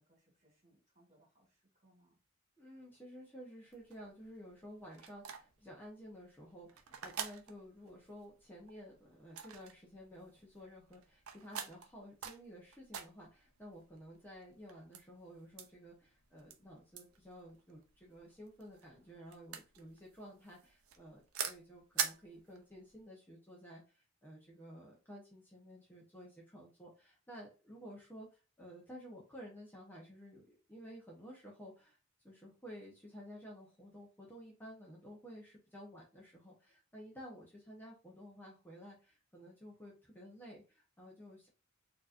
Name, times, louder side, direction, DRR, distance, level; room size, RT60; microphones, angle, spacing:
voice 1, 0.0-2.2, right 1 dB, 35° right, -1 dB, 2.0 m, -70 dB
voice 2, 2.6-32.0 32.2-41.5, equal, 10° left, -3 dB, 0.8 m, -53 dB
sound 1, 3.7-23.0, right 8 dB, 90° right, 0.6 m, -46 dB
4.6 x 2.8 x 2.5 m, 0.32 s
head